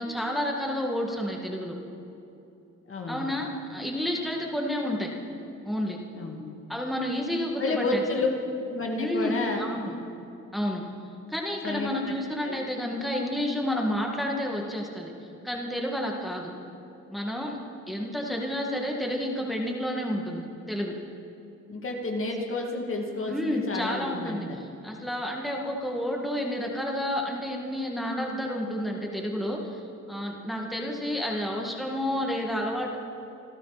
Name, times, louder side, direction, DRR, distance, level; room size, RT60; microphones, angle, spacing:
voice 1, 0.0-1.8 3.1-5.1 5.7-6.0 6.7-8.0 9.0-9.9 10.5-10.8 11.3-15.1 15.4-16.5 17.1-17.6 17.9-20.9 23.3-29.8 30.1-33.0, left 1 dB, ahead, -1 dB, 2.1 m, -30 dB
voice 2, 2.9-3.4 6.1-6.4 7.6-8.3 8.7-9.6 11.6-11.9 12.4-12.6 21.7-24.6, left 3 dB, 45° left, 1 dB, 2.5 m, -30 dB
26.5 x 13.0 x 4.2 m, 2.8 s
cardioid pair, 90°, 30 cm